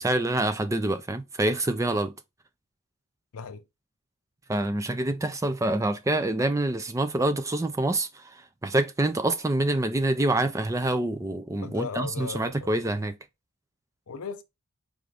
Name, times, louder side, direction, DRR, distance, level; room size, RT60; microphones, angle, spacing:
voice 1, 0.0-2.1 4.5-13.2, right 1 dB, 15° right, 0.3 m, -26 dB
voice 2, 11.6-12.7 14.1-14.4, left 5 dB, 85° left, 0.6 m, -36 dB
4.9 x 2.6 x 3.3 m
head